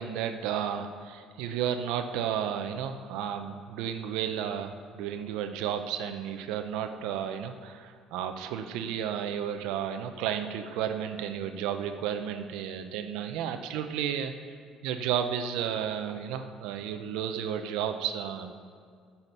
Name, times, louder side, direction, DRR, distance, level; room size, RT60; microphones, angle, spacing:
voice 1, 0.0-14.5 14.8-18.5, right 9 dB, 85° right, 7 dB, 0.6 m, -32 dB
10.5 x 5.8 x 6.7 m, 2.2 s
cardioid pair, 130°, 0 cm